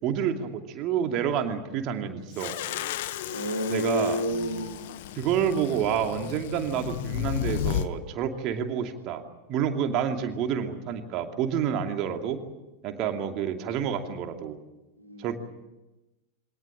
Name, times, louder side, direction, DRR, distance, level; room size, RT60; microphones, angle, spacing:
voice 1, 0.0-2.6 3.7-4.2 5.2-9.2 9.5-12.4 12.8-14.6 15.2-15.4, right 8 dB, 40° right, 5 dB, 2.6 m, -28 dB
sound 1, 2.3-7.9, left 11 dB, 55° left, 1.2 m, -33 dB
voice 2, 3.3-4.8 12.9-13.0 15.0-15.4, left 1 dB, 90° left, 3 dB, 3.2 m, -30 dB
24.0 x 18.5 x 8.7 m, 1.0 s
figure-of-eight pair, 90°, 0 cm